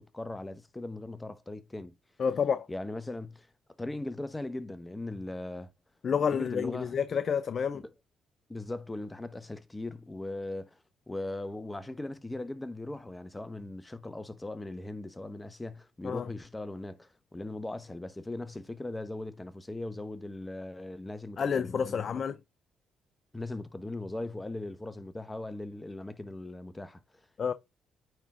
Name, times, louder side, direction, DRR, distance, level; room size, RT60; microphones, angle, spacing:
voice 1, 0.0-1.9 2.7-3.5 3.8-5.7 6.3-6.9 7.7-7.8 8.5-10.8 11.1-22.0 23.3-27.3, left 2 dB, 15° left, 0.9 m, -39 dB
voice 2, 2.2-2.7 6.0-7.8 16.0-16.3 21.4-22.4 27.4-27.5, left 7 dB, 50° left, 0.5 m, -29 dB
9.1 x 3.7 x 3.6 m
supercardioid pair, 65°, 0 cm